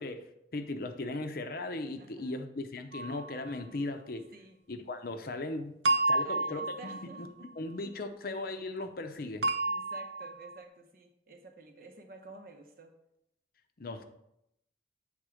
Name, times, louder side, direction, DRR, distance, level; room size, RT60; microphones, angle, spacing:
voice 1, 0.0-4.3 4.7-5.7 6.1-7.1 7.4-9.5 13.8-14.0, left 2 dB, 55° left, 7 dB, 0.6 m, -38 dB
voice 2, 2.0-2.4 4.3-4.6 5.0-5.1 6.2-7.5 9.7-12.9, right 2 dB, 55° right, 5 dB, 0.9 m, -51 dB
sound 1, 2.9-3.4 5.9-7.5 9.4-10.6, right 2 dB, 70° right, 0.6 m, -31 dB
7.5 x 3.6 x 4.9 m, 0.82 s
head